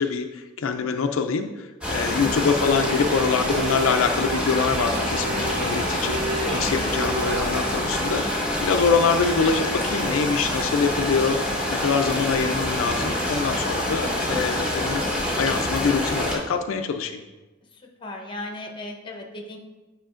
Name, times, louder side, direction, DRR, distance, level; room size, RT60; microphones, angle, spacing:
voice 1, 0.0-17.2, left 5 dB, 85° left, 6 dB, 0.4 m, -25 dB
sound 1, 1.8-16.4, left 1 dB, 5° right, 1.2 m, -26 dB
voice 2, 2.1-2.5 6.4-7.2 17.7-19.6, left 1 dB, 25° left, 1 dB, 0.8 m, -37 dB
sound 2, 2.7-7.8, right 2 dB, 50° right, 0.3 m, -33 dB
8.9 x 5.0 x 2.5 m, 1.2 s
head